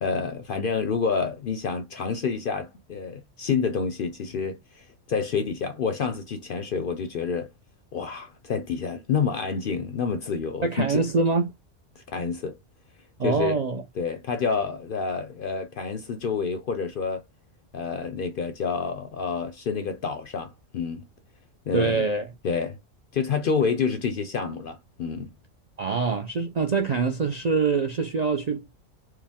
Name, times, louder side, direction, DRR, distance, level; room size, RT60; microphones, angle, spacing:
voice 1, 0.0-7.5 7.9-11.0 12.0-12.6 13.2-13.6 14.0-17.2 17.7-21.1 21.7-22.1 22.4-22.8 23.1-25.3, left 5 dB, 60° left, 0.6 m, -28 dB
voice 2, 10.6-11.5 13.2-13.8 21.7-22.3 25.8-28.7, right 4 dB, 60° right, 0.4 m, -24 dB
4.7 x 2.0 x 3.5 m
omnidirectional pair, 1.3 m